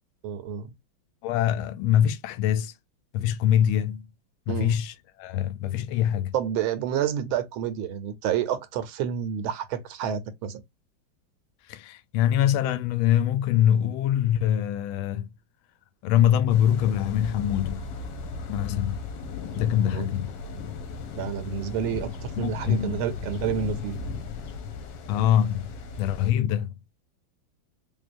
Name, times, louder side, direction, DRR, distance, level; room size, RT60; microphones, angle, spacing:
voice 1, 0.2-0.7 4.5-4.8 6.3-10.6 19.9-20.1 21.1-24.0, right 8 dB, 85° right, 1.6 m, -29 dB
voice 2, 1.2-2.7 3.1-4.1 4.5-6.3 11.7-15.3 16.0-17.8 18.5-19.0 19.5-20.3 22.4-23.0 25.1-26.8, left 10 dB, 90° left, 1.4 m, -24 dB
sound 1, 16.5-26.3, left 4 dB, 70° left, 1.3 m, -36 dB
3.6 x 3.4 x 2.5 m
omnidirectional pair, 2.2 m